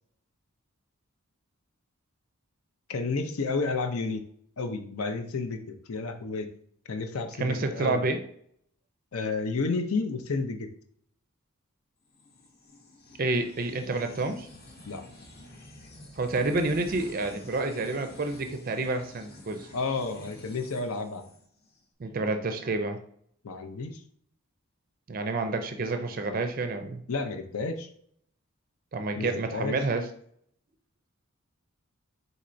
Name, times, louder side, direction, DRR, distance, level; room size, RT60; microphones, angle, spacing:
voice 1, 2.9-4.2 4.6-6.5 6.9-8.0 9.1-10.7 14.9-15.0 19.7-21.2 23.4-24.0 27.1-27.9 29.1-29.8, left 3 dB, 75° left, 6 dB, 0.6 m, -31 dB
voice 2, 7.4-8.2 13.2-14.5 16.2-19.7 22.0-23.0 25.1-27.0 28.9-30.1, right 3 dB, 40° right, 7 dB, 0.4 m, -29 dB
sound 1, 12.1-21.8, left 1 dB, 45° left, 0.9 m, -49 dB
4.3 x 4.0 x 2.6 m, 0.65 s
head